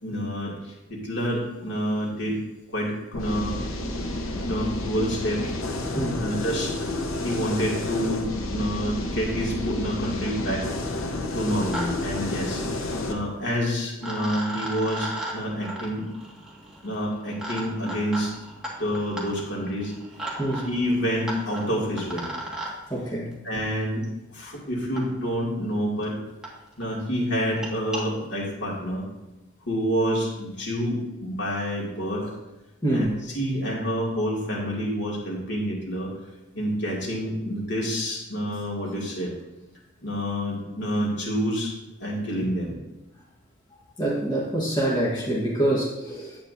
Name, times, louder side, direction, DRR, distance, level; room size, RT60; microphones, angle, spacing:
voice 1, 0.0-2.4 2.7-3.5 4.4-5.5 6.2-6.7 7.2-10.6 10.9-12.6 13.1-16.0 16.8-18.3 18.8-19.9 20.5-22.3 23.4-24.0 24.3-26.2 26.8-29.0 29.7-32.4 32.9-36.1 36.5-39.3 40.0-41.7 42.0-42.7, equal, 60° left, -3 dB, 2.4 m, -28 dB
sound 1, 3.1-13.1, left 2 dB, 80° left, 0.9 m, -30 dB
sound 2, 9.7-9.8 10.0-10.5 11.3-11.9 12.1-12.2 13.5-13.6 14.0-22.7 24.0-24.1 24.9-25.0 25.7-25.8 26.0-26.1 26.4-26.5 26.8-27.0 27.4-28.0, right 1 dB, 5° right, 1.8 m, -36 dB
voice 2, 22.9-23.3 32.8-33.1 44.0-46.4, right 1 dB, 20° left, -5 dB, 1.4 m, -25 dB
9.7 x 8.6 x 2.7 m, 0.99 s
head